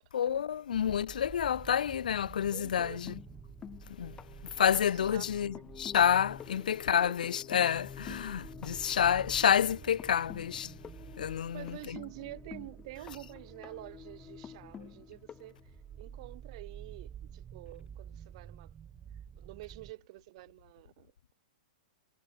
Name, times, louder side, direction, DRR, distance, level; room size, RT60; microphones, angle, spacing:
voice 1, 0.1-3.1 4.0-4.2 4.6-10.7 11.2-12.0, left 9 dB, 80° left, 1.0 m, -29 dB
sound 1, 0.7-19.9, right 9 dB, 20° right, 1.1 m, -51 dB
sound 2, 2.4-16.4 17.6-17.7 18.1-18.2, left 8 dB, 20° left, 2.8 m, -49 dB
voice 2, 2.5-3.1 5.1-5.3 5.5-5.6 6.6-7.2 8.1-8.2 11.5-18.7 19.4-21.3, right 20 dB, 50° right, 3.7 m, -48 dB
hypercardioid pair, 140°, 4 cm